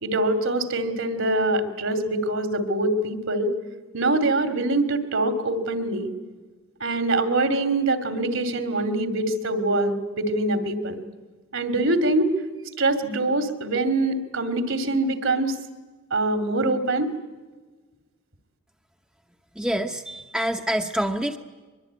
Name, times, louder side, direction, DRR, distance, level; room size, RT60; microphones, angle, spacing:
voice 1, 0.0-3.5 3.9-6.1 6.8-11.0 11.5-12.3 12.8-15.5 16.1-17.1, right 2 dB, 65° right, 9 dB, 2.6 m, -24 dB
voice 2, 19.6-21.4, equal, 5° right, 4 dB, 0.8 m, -26 dB
23.0 x 23.0 x 9.4 m, 1.3 s
head